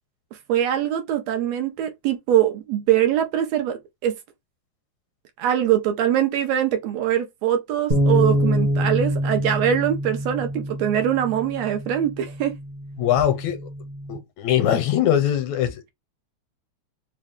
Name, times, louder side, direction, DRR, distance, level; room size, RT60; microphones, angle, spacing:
voice 1, 0.5-4.2 5.4-12.6, right 10 dB, 75° right, 1.7 m, -23 dB
sound 1, 7.9-14.1, equal, 25° right, 0.8 m, -25 dB
voice 2, 13.0-13.7 14.1-15.8, left 10 dB, 80° left, 2.1 m, -21 dB
4.8 x 2.1 x 3.5 m
omnidirectional pair, 3.3 m